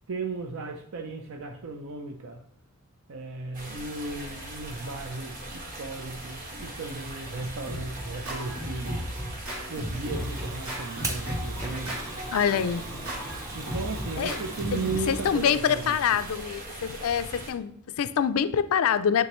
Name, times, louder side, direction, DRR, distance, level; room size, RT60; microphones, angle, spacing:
voice 1, 0.1-2.4 3.1-9.1 9.7-12.0 12.8-13.0 13.5-16.2, right 3 dB, 65° right, 4 dB, 0.5 m, -36 dB
sound 1, 3.5-17.5, right 1 dB, 40° right, 1.5 m, -41 dB
Scratching (performance technique), 7.1-15.6, equal, 80° right, 2.6 m, -36 dB
Fire, 10.0-15.4, right 2 dB, 15° right, 0.7 m, -41 dB
voice 2, 12.3-12.8 14.2-14.4 14.7-19.3, left 8 dB, 70° left, 13 dB, 0.4 m, -25 dB
9.4 x 3.5 x 3.0 m, 0.69 s
head